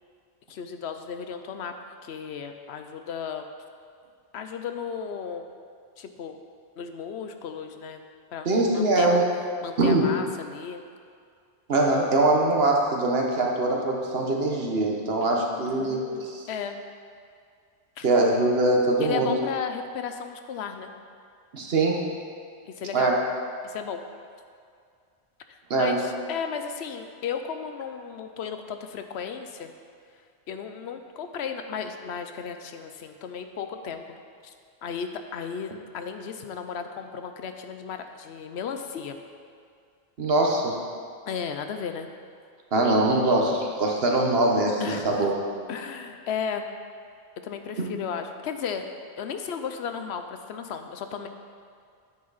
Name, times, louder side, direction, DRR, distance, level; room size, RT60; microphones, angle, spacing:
voice 1, 0.5-1.7 2.0-3.5 4.3-5.5 6.0-6.4 6.8-8.0 8.3-9.2 9.6-10.8 15.7-16.8 18.0-18.1 19.0-20.9 22.7-23.1 23.6-24.0 25.5-29.7 30.5-34.2 34.4-34.5 34.8-39.2 41.3-42.1 44.8-45.3 45.7-46.7 47.4-48.9 49.2-51.3, left 6 dB, 75° left, 7 dB, 0.9 m, -34 dB
voice 2, 8.4-9.2 9.8-10.1 11.7-16.4 18.0-19.3 21.5-22.0 22.9-23.2 25.7-26.0 40.2-40.7 42.7-45.3 47.8-47.9, right 2 dB, 65° right, 0 dB, 1.3 m, -22 dB
9.7 x 7.6 x 4.0 m, 2.2 s
omnidirectional pair, 1.1 m